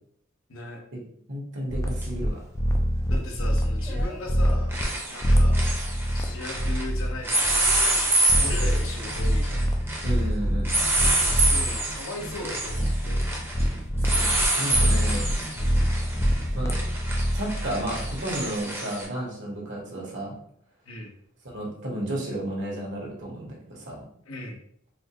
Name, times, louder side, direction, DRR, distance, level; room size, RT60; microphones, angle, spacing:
voice 1, 0.5-0.8 3.1-4.7 5.1-5.6 6.1-7.6 8.2-9.7 11.3-13.2 14.9-15.2 15.5-15.9 20.9-21.1 24.3-24.6, left 2 dB, 80° left, 1 dB, 0.9 m, -38 dB
voice 2, 1.3-2.4 10.0-10.7 14.1-15.2 16.5-16.7 17.3-20.4 21.4-24.0, right 1 dB, 65° right, -2 dB, 1.2 m, -32 dB
sound 1, 1.7-2.3 2.5-4.8 5.2-11.9 12.2-14.5 14.7-18.5, equal, 15° left, 0.3 m, -25 dB
sound 2, 2.0-2.1 3.9-4.1 4.4-6.9 7.2-19.1, right 2 dB, 10° right, 0.7 m, -27 dB
4.2 x 2.2 x 2.9 m, 0.64 s
head